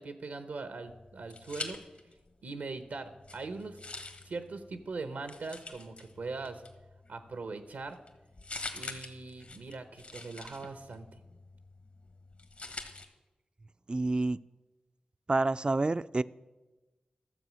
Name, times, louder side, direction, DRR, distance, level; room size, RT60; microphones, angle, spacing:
voice 1, 0.0-1.8 2.4-3.8 4.2-6.6 7.1-8.0 8.7-11.2, right 3 dB, 85° right, 10 dB, 0.8 m, -41 dB
sound 1, 0.8-2.3 2.6-13.0, left 3 dB, 55° left, 1.4 m, -46 dB
voice 2, 13.9-14.4 15.3-16.2, right 2 dB, 35° right, 15 dB, 0.4 m, -28 dB
12.5 x 7.2 x 6.2 m, 1.1 s
cardioid pair, 40°, 3 cm